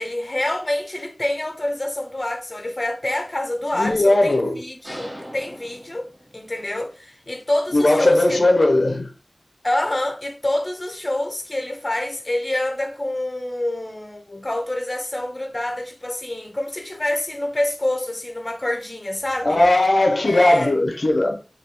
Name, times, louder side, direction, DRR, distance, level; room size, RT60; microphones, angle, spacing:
voice 1, 0.0-8.2 9.6-19.6 20.3-20.7, left 1 dB, 40° left, 0.6 m, -27 dB
voice 2, 3.7-4.6 7.7-9.1 19.4-21.4, left 2 dB, 85° left, 0.5 m, -18 dB
sound 1, 4.8-6.7, equal, 40° right, 1.7 m, -39 dB
3.3 x 2.3 x 2.7 m
wide cardioid pair, 50°, 0 cm